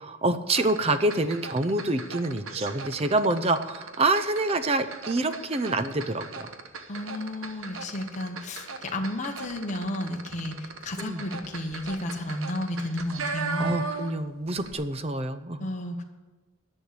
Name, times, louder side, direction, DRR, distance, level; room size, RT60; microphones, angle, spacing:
voice 1, 0.0-6.5 11.0-11.2 13.6-15.7, right 2 dB, 25° right, 11 dB, 0.5 m, -27 dB
sound 1, 0.5-14.3 14.6-14.7, right 4 dB, 65° right, 1.0 m, -38 dB
voice 2, 6.9-13.8 15.6-16.0, left 1 dB, 30° left, 2 dB, 1.1 m, -32 dB
11.0 x 6.5 x 8.3 m, 1.2 s
head